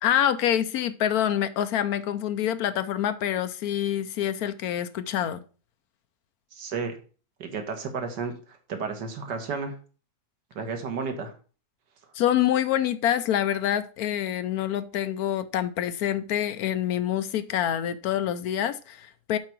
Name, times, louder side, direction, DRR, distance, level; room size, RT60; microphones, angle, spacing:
voice 1, 0.0-5.4 12.1-19.4, left 10 dB, 70° left, 1.0 m, -26 dB
voice 2, 6.5-7.0 7.4-9.8 10.6-11.3, right 5 dB, 85° right, 1.9 m, -32 dB
7.6 x 4.7 x 5.9 m
omnidirectional pair, 1.8 m